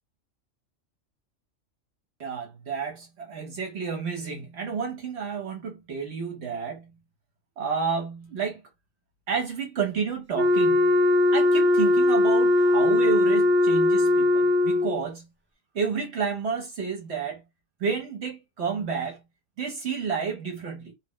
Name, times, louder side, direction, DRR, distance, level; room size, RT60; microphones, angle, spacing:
voice 1, 2.2-7.0 7.6-8.6 9.3-11.0 11.3-15.3 15.7-17.4 17.8-19.2 19.6-20.9, right 5 dB, 65° right, 0.9 m, -30 dB
Wind instrument woodwind instrument, 10.4-15.0, left 2 dB, 15° right, 0.4 m, -20 dB
2.3 x 2.0 x 3.6 m
omnidirectional pair, 1.3 m